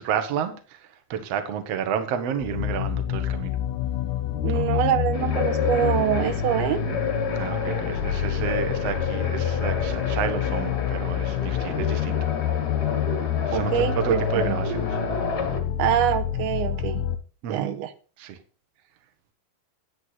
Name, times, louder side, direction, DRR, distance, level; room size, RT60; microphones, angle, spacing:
voice 1, 0.0-3.6 4.5-4.7 7.4-12.2 13.5-15.0 17.4-17.7 18.2-18.4, right 8 dB, 60° right, 1.8 m, -30 dB
sound 1, 2.4-17.2, left 10 dB, 70° left, 1.9 m, -27 dB
voice 2, 4.4-6.8 13.5-14.6 15.8-17.0 17.5-17.9, right 11 dB, 85° right, 2.7 m, -25 dB
sound 2, 5.1-15.6, left 4 dB, 55° left, 1.1 m, -30 dB
9.6 x 9.5 x 4.1 m
omnidirectional pair, 4.4 m